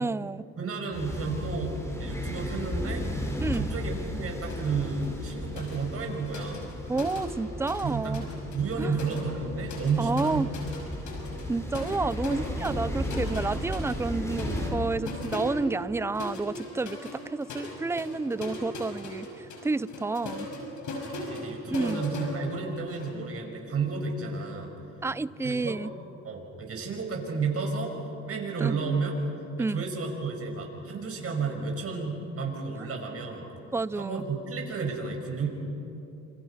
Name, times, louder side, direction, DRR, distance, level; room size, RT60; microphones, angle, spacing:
voice 1, 0.0-0.4 3.4-3.7 6.9-8.2 8.8-9.0 10.0-10.5 11.5-20.5 21.7-22.0 25.0-25.9 28.6-28.8 29.6-29.8 33.7-34.2, right 3 dB, 10° right, 18 dB, 0.5 m, -30 dB
voice 2, 0.6-3.1 3.5-6.8 7.8-8.2 8.5-10.5 21.2-24.8 25.4-25.8 26.2-27.9 28.2-29.1 29.7-33.5 34.0-35.5, right 4 dB, 50° right, 2 dB, 6.1 m, -32 dB
sound 1, 0.9-14.7, left 1 dB, 10° left, 5.3 m, -35 dB
sound 2, 4.5-4.7 5.0-7.9 8.1-23.1, left 1 dB, 75° left, 6.1 m, -39 dB
28.0 x 27.5 x 5.8 m, 2.9 s
cardioid pair, 90°, 30 cm